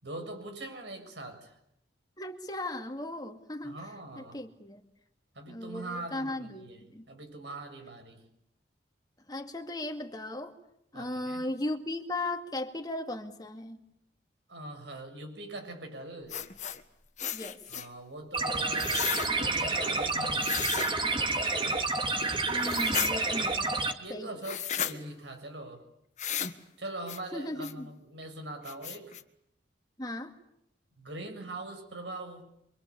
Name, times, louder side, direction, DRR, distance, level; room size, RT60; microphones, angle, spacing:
voice 1, 0.0-1.6 3.6-4.4 5.3-8.2 10.9-11.4 14.5-16.4 17.7-20.6 24.0-25.9 26.8-29.2 31.0-32.4, right 2 dB, 75° right, 5 dB, 6.9 m, -42 dB
voice 2, 2.2-3.8 4.2-4.8 5.5-7.0 9.3-10.6 10.9-13.8 17.3-17.6 22.5-23.8 24.1-24.3 27.3-27.9 30.0-30.3, left 1 dB, 20° left, 4 dB, 2.4 m, -37 dB
sound 1, 16.3-16.8 17.2-17.9 18.8-19.3 20.4-20.9 22.6-23.1 24.4-24.9 26.2-26.6 27.1-27.2 27.6-27.7 28.2-28.3 28.6-29.2, left 9 dB, 40° left, 1.5 m, -34 dB
sound 2, 18.3-23.9, right 3 dB, 25° right, 2.3 m, -29 dB
27.5 x 25.0 x 8.6 m, 0.78 s
head